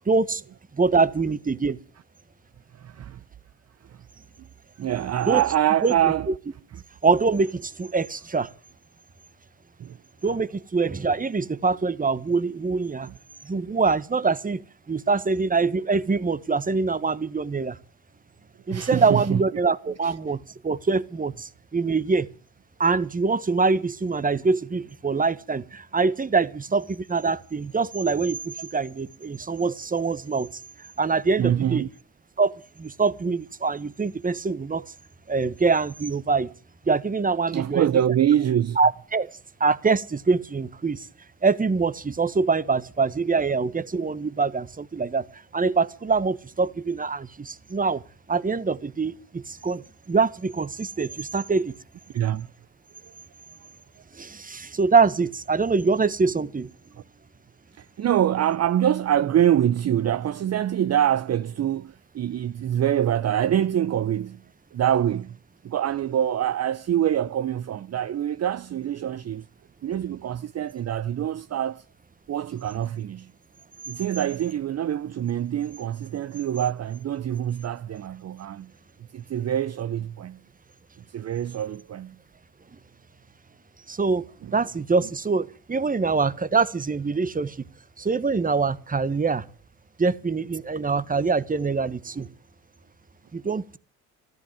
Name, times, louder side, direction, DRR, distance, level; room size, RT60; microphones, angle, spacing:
voice 1, 0.1-0.4 0.7-1.8 5.3-5.4 5.8-5.9 7.0-8.5 10.2-13.1 13.4-14.6 14.9-17.8 18.7-22.3 22.8-30.5 31.0-31.8 32.4-34.8 35.3-36.5 36.9-37.9 38.8-39.3 39.6-41.1 41.4-48.0 48.3-51.8 54.1-56.7 83.9-84.2 84.5-87.7 88.0-89.4 90.0-92.3 93.3-93.8, right 4 dB, 20° right, 1.3 m, -24 dB
voice 2, 2.7-3.2 3.9-4.0 4.8-6.3 9.8-10.0 13.0-13.1 13.5-13.8 18.7-19.4 20.0-20.1 31.4-31.9 37.5-38.8 52.1-52.5 53.0-53.1 57.7-64.4 64.7-65.4 65.6-69.5 69.8-71.8 72.3-73.3 73.9-78.7 79.1-80.4 81.0-82.2 84.4-84.6, right 10 dB, 40° right, 0.7 m, -25 dB
14.0 x 13.5 x 7.5 m
supercardioid pair, 70°, 42 cm